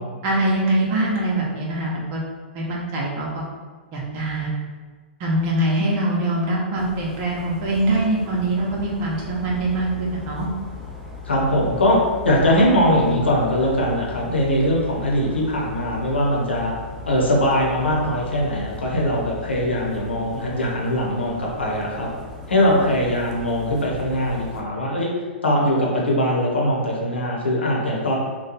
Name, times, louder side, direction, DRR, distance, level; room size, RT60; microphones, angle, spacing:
voice 1, 0.2-2.3 2.5-3.4 3.9-4.5 5.2-10.5, right 1 dB, 40° right, -3 dB, 0.7 m, -23 dB
sound 1, 6.8-24.6, left 4 dB, ahead, 0.5 m, -38 dB
voice 2, 11.2-16.7 17.1-22.1 22.5-25.1 25.4-28.2, equal, 85° left, -2 dB, 0.9 m, -21 dB
3.0 x 2.2 x 3.9 m, 1.4 s
hypercardioid pair, 110°, 6 cm